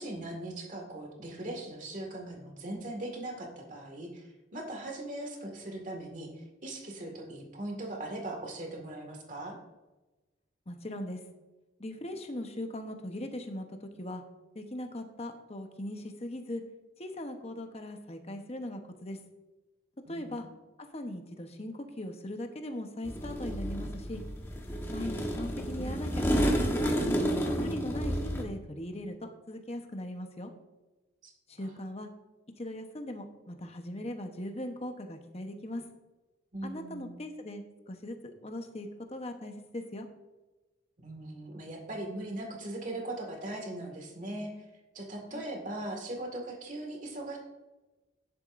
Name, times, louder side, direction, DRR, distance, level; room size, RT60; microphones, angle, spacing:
voice 1, 0.0-9.6 20.1-20.4 31.2-31.3 31.6-31.7 36.5-37.1 41.0-44.7 44.9-47.4, right 1 dB, 40° right, 2 dB, 2.0 m, -40 dB
voice 2, 10.7-11.2 11.8-14.2 14.5-16.6 17.0-19.2 20.1-20.5 20.9-24.2 24.9-27.2 27.6-30.5 31.5-32.1 32.6-35.9 36.6-38.2 38.4-40.1 45.3-45.4, left 1 dB, 30° left, 5 dB, 1.0 m, -39 dB
sound 1, 23.1-28.4, equal, 10° left, 1.2 m, -30 dB
11.0 x 10.5 x 2.6 m, 1.1 s
head